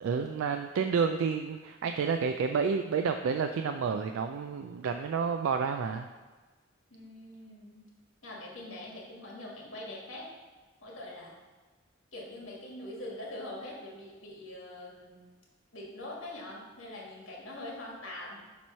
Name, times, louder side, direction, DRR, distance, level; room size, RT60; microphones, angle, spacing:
voice 1, 0.0-6.1, right 5 dB, 85° right, 6 dB, 0.3 m, -30 dB
voice 2, 6.9-7.8 8.2-10.3 10.8-11.4 12.1-15.2 15.7-18.4, left 1 dB, 80° left, -3 dB, 1.7 m, -43 dB
7.2 x 3.1 x 5.5 m, 1.3 s
head